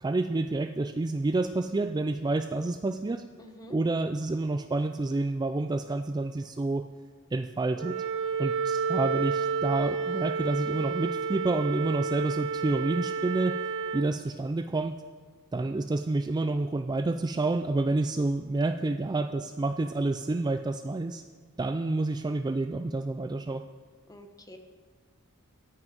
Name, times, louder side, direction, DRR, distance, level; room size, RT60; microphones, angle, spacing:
voice 1, 0.0-3.2 3.7-6.9 7.3-8.0 8.4-13.6 13.9-15.0 15.5-21.2 21.6-23.6, right 2 dB, 20° right, 9 dB, 0.3 m, -29 dB
voice 2, 3.4-3.8 24.1-24.6, left 1 dB, 15° left, 5 dB, 1.2 m, -48 dB
Wind instrument woodwind instrument, 7.8-14.1, right 5 dB, 60° right, 0.7 m, -30 dB
14.0 x 6.1 x 9.3 m, 1.5 s
head